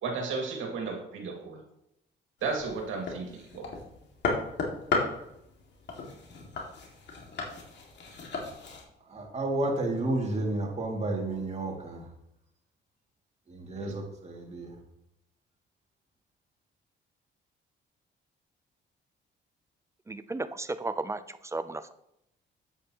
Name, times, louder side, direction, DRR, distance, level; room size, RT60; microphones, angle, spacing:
voice 1, 0.0-1.6 2.4-3.7 13.8-13.9, right 4 dB, 80° right, 2.1 m, -34 dB
sound 1, 2.4-8.8, left 4 dB, 60° left, 2.2 m, -35 dB
voice 2, 9.1-12.1 13.5-14.8, right 2 dB, 35° right, 2.4 m, -31 dB
voice 3, 20.1-21.9, right 2 dB, 15° right, 0.5 m, -34 dB
8.6 x 8.2 x 3.0 m
cardioid pair, 90°, 20 cm